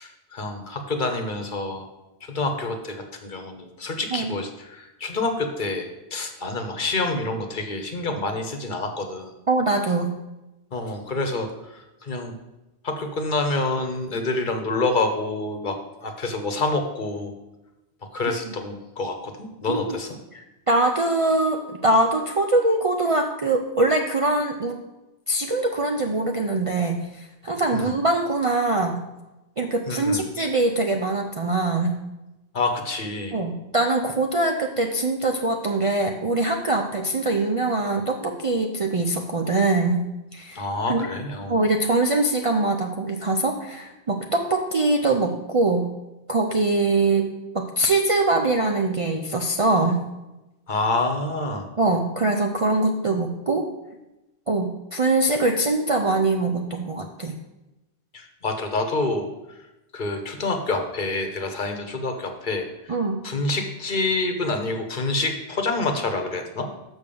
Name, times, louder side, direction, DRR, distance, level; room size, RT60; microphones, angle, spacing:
voice 1, 0.0-1.9 2.2-9.3 10.7-12.3 12.8-17.3 18.1-20.1 27.7-27.9 29.9-30.2 32.5-33.4 40.5-41.6 50.7-51.6 58.1-59.3 59.9-63.0 63.2-66.7, left 2 dB, 50° left, 5 dB, 1.0 m, -27 dB
voice 2, 9.5-10.2 18.5-18.6 19.7-20.0 20.3-24.8 25.3-29.0 29.6-32.0 33.3-40.1 40.3-41.1 41.5-45.9 46.3-50.0 51.8-53.7 54.5-57.3 62.9-63.2, right 2 dB, 45° right, 3 dB, 0.5 m, -23 dB
6.2 x 5.2 x 6.9 m, 1.0 s
omnidirectional pair, 1.1 m